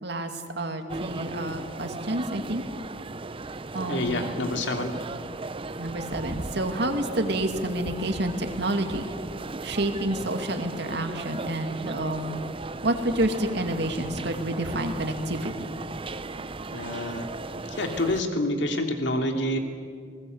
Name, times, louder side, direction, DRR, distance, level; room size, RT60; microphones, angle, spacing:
voice 1, 0.0-2.6 3.7-4.3 5.8-9.1 9.6-12.4 12.8-15.7, right 1 dB, 65° right, 5 dB, 2.4 m, -29 dB
sound 1, 0.9-18.2, right 3 dB, 30° right, 0.7 m, -36 dB
voice 2, 3.9-4.9 16.7-17.3 17.7-19.6, left 1 dB, 75° left, 4 dB, 2.7 m, -27 dB
29.5 x 20.0 x 8.0 m, 2.2 s
head